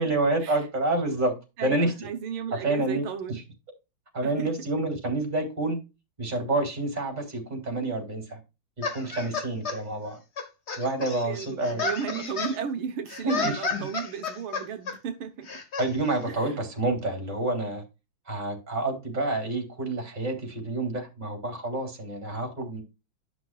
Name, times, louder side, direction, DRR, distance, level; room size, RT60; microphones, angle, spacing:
voice 1, 0.0-1.3 1.6-1.9 2.6-3.0 4.1-5.8 6.2-8.4 8.8-10.2 10.8-12.2 13.2-13.8 15.8-17.8 18.3-22.8, right 2 dB, 20° right, 3.1 m, -28 dB
voice 2, 1.6-3.4 4.2-4.5 11.2-15.5 16.3-16.6, right 7 dB, 85° right, 1.9 m, -34 dB
sound 1, 8.8-9.8 10.4-12.6 13.1-15.0 15.5-15.9, left 4 dB, 35° left, 1.3 m, -32 dB
11.5 x 6.2 x 2.4 m
omnidirectional pair, 2.3 m